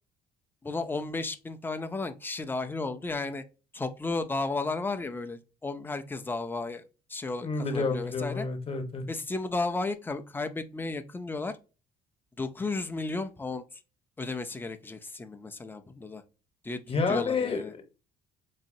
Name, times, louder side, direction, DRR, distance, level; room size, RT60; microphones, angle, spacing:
voice 1, 0.6-3.4 3.7-8.5 9.1-11.6 12.4-13.6 14.2-16.2 16.6-17.7, left 3 dB, 10° left, 0.5 m, -34 dB
voice 2, 7.4-9.1 16.9-17.8, left 4 dB, 35° left, 1.0 m, -29 dB
4.1 x 2.8 x 2.7 m
cardioid pair, 110°, 17 cm